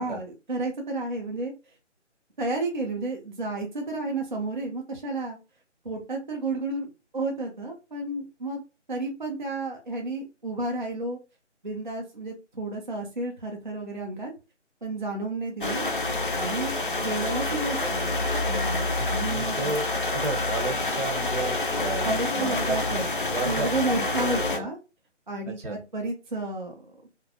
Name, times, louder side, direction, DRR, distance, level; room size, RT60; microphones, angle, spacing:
voice 1, 0.0-1.5 2.4-5.4 5.8-6.9 7.1-8.6 8.9-11.2 11.6-14.3 14.8-15.8 16.3-19.6 22.0-23.0 23.4-24.8 25.3-27.1, right 2 dB, 40° right, 1 dB, 0.4 m, -31 dB
sound 1, 15.6-24.6, left 2 dB, 45° left, 0.4 m, -27 dB
voice 2, 19.0-22.8 23.2-24.1 25.5-25.8, right 3 dB, 75° right, 5 dB, 0.9 m, -33 dB
2.5 x 2.1 x 2.7 m, 0.30 s
figure-of-eight pair, 150°, 37 cm